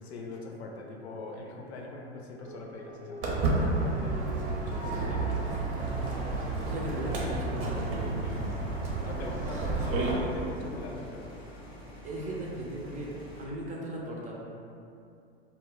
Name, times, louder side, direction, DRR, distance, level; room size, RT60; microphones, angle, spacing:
voice 1, 0.0-5.7 9.0-11.3, left 2 dB, 75° left, 0 dB, 0.5 m, -42 dB
sound 1, 2.4-7.4, right 1 dB, 80° right, 0.9 m, -45 dB
Walk footsteps, 3.2-10.1, right 3 dB, 55° right, 0.7 m, -31 dB
sound 2, 5.8-13.5, equal, 15° left, 0.6 m, -47 dB
voice 2, 6.6-8.5 12.0-13.1 13.4-14.4, right 1 dB, 25° right, -4 dB, 0.5 m, -37 dB
2.2 x 2.1 x 3.6 m, 2.6 s
hypercardioid pair, 95°, 33 cm